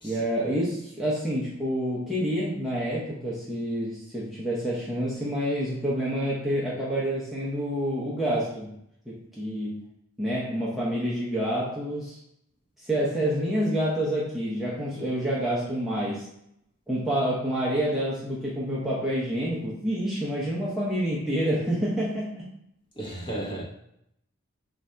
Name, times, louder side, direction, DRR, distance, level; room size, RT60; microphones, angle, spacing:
voice 1, 0.0-8.8 9.1-9.9 10.2-12.2 12.8-16.3 16.9-22.5, equal, ahead, 0.6 m, -28 dB
voice 2, 23.0-23.6, right 1 dB, 20° left, 0.9 m, -34 dB
3.3 x 2.5 x 4.3 m
head